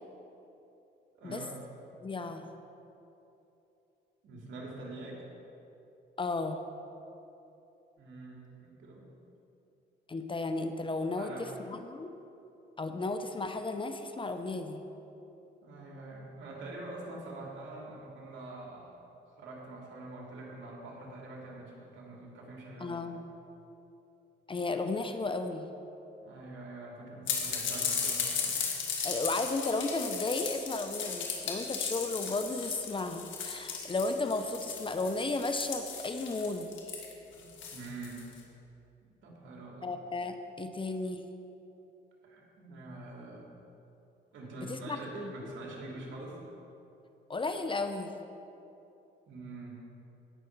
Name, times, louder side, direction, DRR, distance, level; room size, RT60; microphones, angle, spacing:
voice 1, 1.1-1.6 4.2-5.2 8.0-9.1 11.2-11.5 15.6-19.0 19.4-23.1 26.2-28.7 37.4-38.3 39.2-39.9 42.2-43.5 44.3-46.4 49.3-49.8, right 2 dB, 75° right, -2 dB, 2.5 m, -45 dB
voice 2, 2.0-2.5 6.2-6.6 10.1-12.1 12.8-14.8 22.8-23.2 24.5-25.7 29.0-37.0 39.8-41.3 44.6-45.3 47.3-48.1, left 3 dB, 25° left, 7 dB, 0.7 m, -34 dB
sound 1, 27.3-38.3, left 6 dB, 75° left, 1.8 m, -36 dB
17.0 x 6.2 x 4.6 m, 2.9 s
cardioid pair, 90°, 20 cm